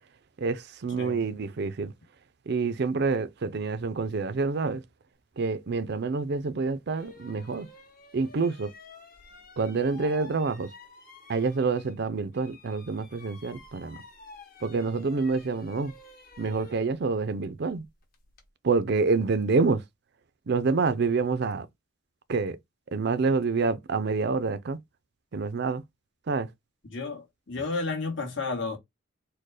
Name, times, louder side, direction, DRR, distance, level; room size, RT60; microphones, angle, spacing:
voice 1, 0.4-1.9 2.5-4.8 5.4-7.7 8.1-8.7 9.6-10.7 11.3-14.0 14.6-15.9 16.4-17.8 18.6-19.8 20.5-21.7 22.3-22.6 22.9-24.8 25.3-25.8 26.3-26.5, right 4 dB, 55° right, 0.5 m, -27 dB
sound 1, 6.3-6.4 6.9-12.1 12.3-18.5, left 3 dB, 45° left, 1.3 m, -51 dB
voice 2, 26.9-28.8, left 3 dB, 65° left, 1.5 m, -32 dB
4.4 x 2.2 x 4.7 m
head